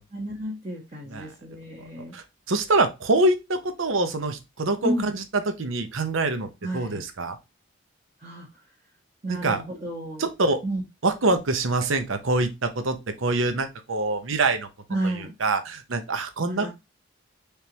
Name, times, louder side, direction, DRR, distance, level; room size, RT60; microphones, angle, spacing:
voice 1, 0.1-2.1 4.8-5.1 6.6-7.1 8.2-8.5 9.2-10.3 10.6-10.8 14.9-15.3 16.5-16.7, right 1 dB, 30° right, 1.1 m, -31 dB
voice 2, 2.1-7.4 9.3-9.6 10.2-10.6 11.0-14.7 15.0-16.7, right 2 dB, 75° right, 0.8 m, -25 dB
4.6 x 3.4 x 2.9 m
head